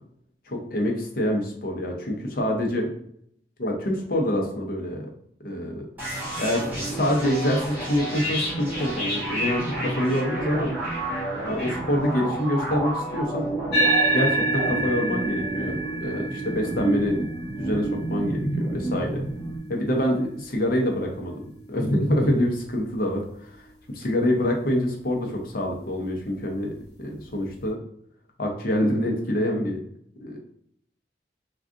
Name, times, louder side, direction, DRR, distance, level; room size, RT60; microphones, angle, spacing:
voice 1, 0.5-2.9 3.6-5.1 5.4-5.8 6.4-10.7 11.4-13.5 14.1-17.3 17.6-19.2 19.7-23.2 24.0-26.7 27.0-27.8 28.4-29.8 30.2-30.4, left 1 dB, 55° left, 1 dB, 0.7 m, -26 dB
sound 1, 6.0-19.6, right 1 dB, 10° right, 1.2 m, -30 dB
sound 2, 13.7-22.5, right 2 dB, 80° left, 1.2 m, -29 dB
3.5 x 2.3 x 2.5 m, 0.68 s
head